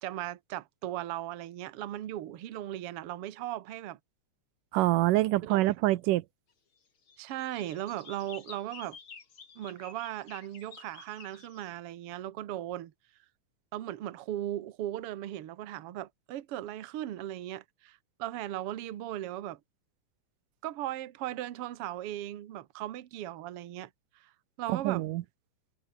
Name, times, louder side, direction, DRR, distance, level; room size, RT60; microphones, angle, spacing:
voice 1, 0.0-4.0 5.4-5.6 7.2-9.0 9.6-12.9 13.7-19.6 20.6-23.9 24.2-24.3 24.6-25.0, right 13 dB, 55° right, 1.8 m, -37 dB
voice 2, 4.7-6.2 24.7-25.2, right 17 dB, 90° right, 2.4 m, -26 dB
sound 1, 7.1-11.7, left 6 dB, 40° left, 3.4 m, -51 dB
omnidirectional pair, 3.7 m